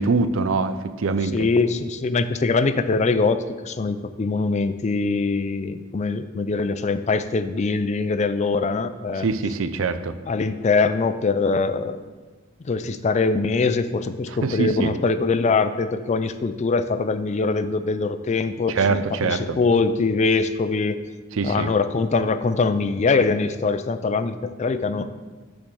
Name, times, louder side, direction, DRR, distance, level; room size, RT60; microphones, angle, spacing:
voice 1, 0.0-1.4 9.2-10.1 14.4-14.9 18.7-19.6 21.3-21.7, right 4 dB, 85° right, 11 dB, 0.5 m, -23 dB
voice 2, 1.3-9.3 10.3-12.0 12.6-21.0 21.4-25.1, left 4 dB, 35° left, 12 dB, 0.4 m, -23 dB
6.9 x 5.3 x 6.2 m, 1.3 s
head